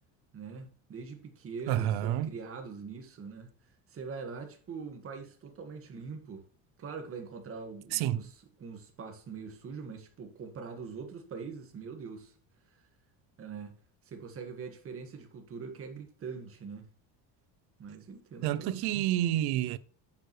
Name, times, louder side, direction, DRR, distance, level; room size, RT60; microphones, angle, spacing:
voice 1, 0.3-3.5 3.9-6.4 6.8-8.3 8.6-12.3 13.4-13.7 14.1-16.8 17.8-19.0, right 5 dB, 35° right, 1.7 m, -43 dB
voice 2, 1.7-2.3 7.9-8.2 18.4-19.8, right 12 dB, 70° right, 0.6 m, -29 dB
9.5 x 6.8 x 3.2 m
cardioid pair, 155°, 39 cm